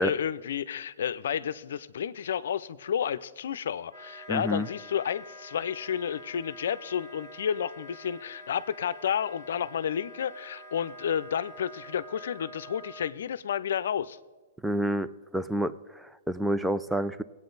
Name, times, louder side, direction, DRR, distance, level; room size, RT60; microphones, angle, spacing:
voice 1, 0.0-14.2, left 8 dB, 75° left, 15 dB, 0.5 m, -31 dB
Wind instrument woodwind instrument, 3.9-13.1, equal, 45° right, 1.8 m, -47 dB
voice 2, 4.3-4.7 14.6-17.2, equal, 5° right, 13 dB, 0.5 m, -29 dB
21.0 x 8.7 x 4.0 m, 1.3 s
hypercardioid pair, 130°, 0 cm